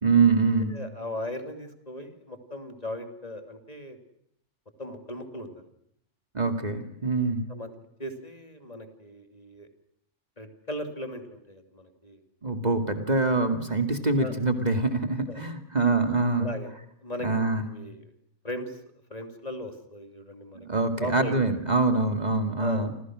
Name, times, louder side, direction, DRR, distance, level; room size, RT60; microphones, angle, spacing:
voice 1, 0.0-0.8 6.3-7.5 12.4-16.5 17.2-17.6 20.5-22.9, right 3 dB, 35° right, 6 dB, 2.4 m, -24 dB
voice 2, 0.7-4.0 4.8-5.7 7.5-7.7 8.0-9.7 10.4-12.2 14.2-14.3 15.3-15.4 16.4-16.7 17.0-18.0 18.4-18.8 19.1-20.7 21.0-21.3 22.6-22.9, left 1 dB, 30° left, 6 dB, 3.1 m, -38 dB
29.5 x 27.0 x 6.3 m, 0.73 s
omnidirectional pair, 1.3 m